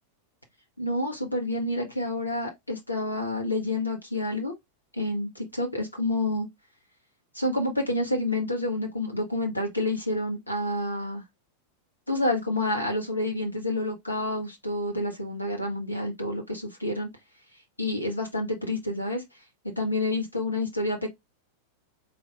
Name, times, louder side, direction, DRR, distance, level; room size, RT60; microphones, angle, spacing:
voice 1, 0.8-4.5 4.9-6.5 7.3-11.2 12.1-17.1 17.8-19.2 19.8-21.1, left 1 dB, 85° left, 1.0 m, -28 dB
3.9 x 2.4 x 3.5 m
figure-of-eight pair, 90°, 0 cm